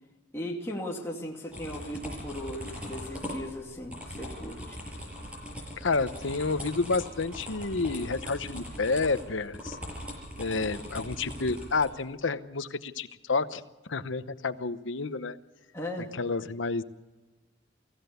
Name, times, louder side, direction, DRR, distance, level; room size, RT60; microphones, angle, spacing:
voice 1, 0.3-4.8 15.7-16.1, left 1 dB, 15° left, -2 dB, 2.5 m, -37 dB
sound 1, 1.5-11.9, equal, 5° right, 6.4 m, -40 dB
voice 2, 5.8-9.8 10.4-13.6 13.9-15.4 16.1-16.8, left 3 dB, 80° left, 12 dB, 0.9 m, -30 dB
24.0 x 16.0 x 6.9 m, 1.2 s
head